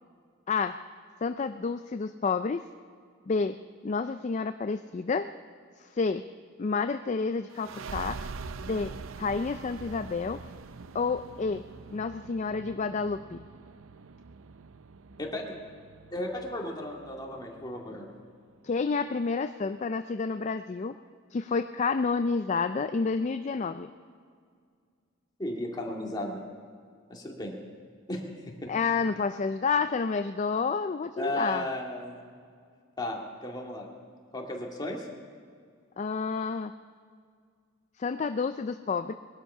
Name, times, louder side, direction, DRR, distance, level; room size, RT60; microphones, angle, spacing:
voice 1, 1.2-2.6 3.3-3.6 3.8-5.3 5.8-6.2 6.6-8.2 8.6-10.4 10.9-11.6 11.9-13.4 18.6-21.0 21.3-23.9 28.7-31.6 36.0-36.7 38.0-39.1, left 4 dB, 35° left, 10 dB, 0.4 m, -29 dB
sound 1, 7.5-18.8, right 4 dB, 85° right, 0.6 m, -44 dB
voice 2, 15.2-15.6 16.1-18.1 25.4-26.4 27.1-27.6 28.1-28.7 31.2-32.2 33.0-33.9 34.3-35.1, left 1 dB, 20° left, -1 dB, 2.2 m, -35 dB
21.0 x 12.0 x 5.6 m, 2.1 s
head